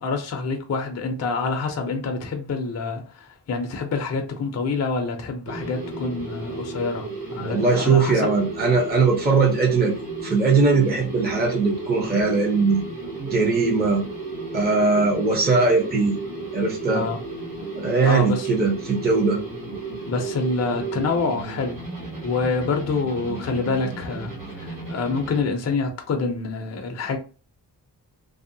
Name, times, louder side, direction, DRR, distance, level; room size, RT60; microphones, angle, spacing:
voice 1, 0.0-8.2 16.9-17.2 18.0-18.5 20.1-21.8 22.2-24.3 24.6-27.2, left 4 dB, 40° left, 0.5 m, -26 dB
sound 1, 5.5-25.4, right 3 dB, 50° right, 1.0 m, -33 dB
voice 2, 7.4-12.8 13.3-14.0 14.5-16.2 16.5-17.0 17.8-19.4, right 4 dB, 25° right, 0.7 m, -20 dB
2.7 x 2.0 x 2.6 m
wide cardioid pair, 145°, 42 cm